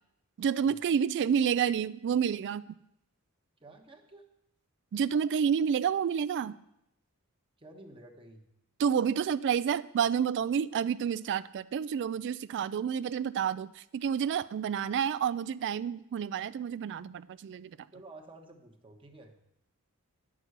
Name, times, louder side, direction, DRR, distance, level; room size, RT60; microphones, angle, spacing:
voice 1, 0.4-2.6 4.9-6.6 8.8-17.8, right 7 dB, 55° right, 15 dB, 0.3 m, -29 dB
voice 2, 3.6-4.2 7.6-8.5 17.9-19.4, right 2 dB, 25° right, 2 dB, 1.1 m, -51 dB
9.9 x 6.1 x 7.9 m, 0.80 s
head